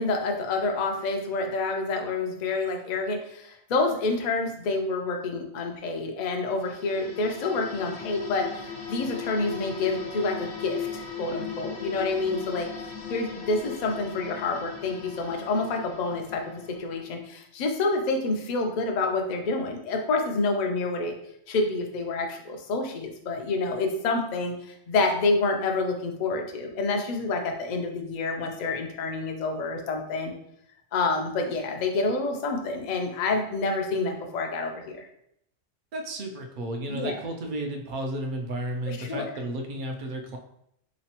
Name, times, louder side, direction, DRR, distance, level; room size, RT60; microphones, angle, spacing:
voice 1, 0.0-12.7 13.1-21.1 21.5-30.3 30.9-35.1 36.9-37.2 38.9-39.4, left 3 dB, 50° left, 3 dB, 0.5 m, -28 dB
sound 1, 6.6-17.0, left 7 dB, 80° left, 1.0 m, -38 dB
voice 2, 35.9-40.4, right 1 dB, 55° right, 3 dB, 0.6 m, -33 dB
3.9 x 3.0 x 2.9 m, 0.73 s
omnidirectional pair, 1.2 m